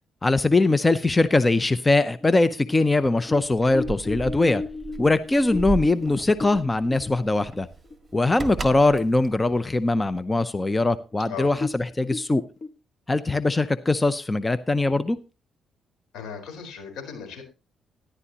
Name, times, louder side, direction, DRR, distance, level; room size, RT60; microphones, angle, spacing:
voice 1, 0.2-4.6 5.0-7.7 8.1-12.4 13.1-15.2, left 2 dB, 20° left, 14 dB, 0.6 m, -21 dB
sound 1, 2.2-8.1 8.4-8.5 8.9-9.4 9.8-9.9 10.6-10.7 11.0-11.1 11.5-12.7, left 3 dB, 40° left, 1.3 m, -35 dB
Keys jangling, 3.4-10.4, right 5 dB, 30° right, 1.6 m, -36 dB
voice 2, 16.1-17.4, left 6 dB, 85° left, 5 dB, 4.3 m, -37 dB
14.0 x 11.0 x 2.9 m, 0.29 s
cardioid pair, 90°, 0 cm